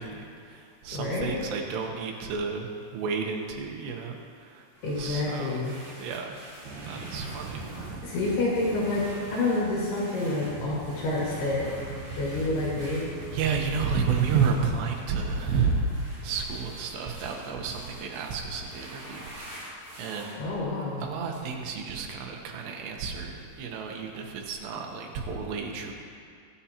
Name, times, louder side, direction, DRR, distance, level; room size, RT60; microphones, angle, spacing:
voice 1, 0.0-4.7 5.0-5.7 6.0-6.4 6.8-7.7 13.3-19.6 20.0-20.4 21.0-25.9, right 5 dB, 90° right, 2 dB, 3.3 m, -31 dB
voice 2, 0.9-1.4 4.8-5.8 8.0-11.9 12.2-13.1 20.4-21.0, left 2 dB, 70° left, -6 dB, 4.1 m, -28 dB
sound 1, 4.7-20.3, equal, 20° right, 1.6 m, -47 dB
sound 2, 6.6-14.8, right 3 dB, 75° right, 2.2 m, -42 dB
23.0 x 8.3 x 2.9 m, 2.3 s
omnidirectional pair, 4.8 m